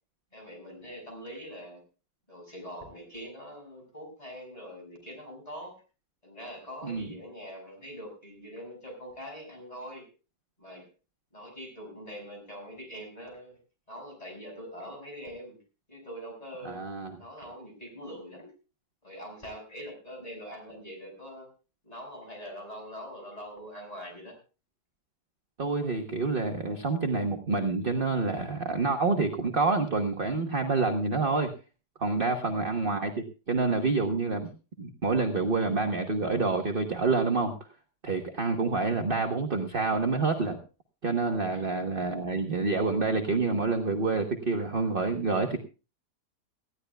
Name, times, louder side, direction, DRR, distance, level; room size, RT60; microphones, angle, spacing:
voice 1, 0.3-1.8 2.3-5.8 6.2-10.1 10.6-10.9 11.3-13.6 13.9-15.6 15.9-16.9 17.2-18.5 19.0-21.5 21.8-24.4 32.3-32.6 41.5-41.8, equal, 20° left, 1 dB, 6.3 m, -43 dB
voice 2, 16.6-17.1 25.6-31.5 32.0-34.5 34.8-37.5 38.0-40.6 41.0-45.6, right 3 dB, 35° right, 4 dB, 1.2 m, -27 dB
19.5 x 15.5 x 2.3 m, 0.33 s
omnidirectional pair, 1.8 m